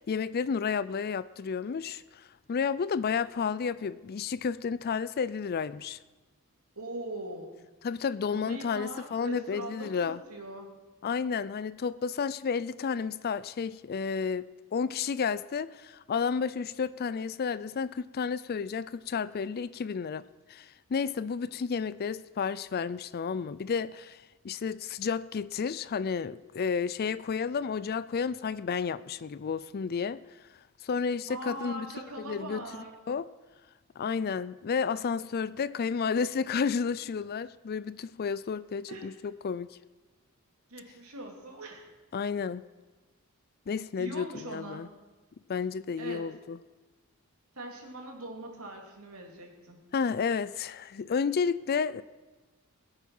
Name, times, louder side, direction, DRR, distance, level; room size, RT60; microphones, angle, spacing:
voice 1, 0.0-6.0 7.8-10.2 11.0-20.2 20.5-30.2 30.8-31.9 32.2-32.7 33.1-33.3 34.0-39.8 42.1-42.6 43.7-44.9 45.5-46.6 49.9-52.0, left 6 dB, 45° left, 18 dB, 0.4 m, -31 dB
voice 2, 6.7-7.5 8.3-10.7 31.3-32.9 38.9-39.1 40.7-41.9 44.0-44.9 46.0-46.2 47.5-49.8, right 1 dB, 80° right, 1 dB, 3.0 m, -41 dB
21.0 x 8.5 x 5.5 m, 1.2 s
head